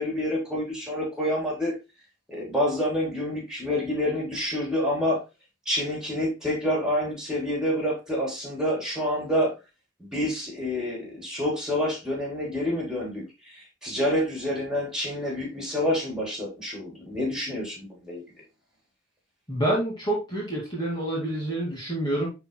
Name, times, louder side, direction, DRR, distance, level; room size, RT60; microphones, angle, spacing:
voice 1, 0.0-1.7 2.3-5.2 5.7-9.5 10.0-18.2, left 1 dB, 5° right, -2 dB, 3.8 m, -28 dB
voice 2, 19.5-22.3, right 1 dB, 20° left, -4 dB, 2.2 m, -27 dB
11.0 x 4.8 x 2.2 m, 0.25 s
head